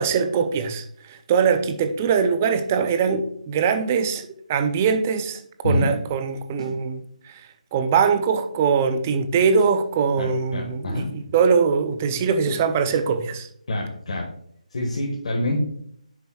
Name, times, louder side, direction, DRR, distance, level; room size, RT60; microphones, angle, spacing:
voice 1, 0.0-7.4 7.7-13.5, right 6 dB, 15° right, 9 dB, 0.4 m, -22 dB
sound 1, 6.6-6.9 9.6-9.9 12.5-12.8, right 1 dB, 35° right, 2.1 m, -39 dB
voice 2, 10.2-11.1 13.7-14.3 14.7-15.6, left 1 dB, 55° left, -2 dB, 1.5 m, -25 dB
8.5 x 6.9 x 2.3 m, 0.68 s
hypercardioid pair, 170°, 4 cm